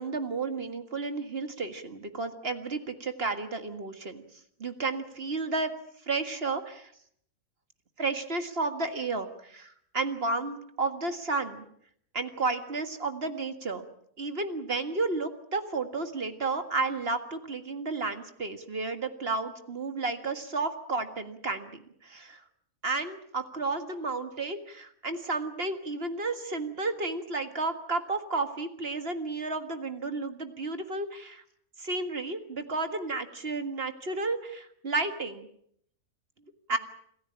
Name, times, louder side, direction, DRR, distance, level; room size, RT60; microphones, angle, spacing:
voice 1, 0.0-4.2 4.6-5.7 6.1-6.9 8.0-11.7 12.1-13.8 14.2-22.4 22.8-31.4 31.8-35.5 36.7-36.8, right 3 dB, 40° right, 8 dB, 2.0 m, -32 dB
27.5 x 15.0 x 8.7 m, 0.69 s
omnidirectional pair, 1.6 m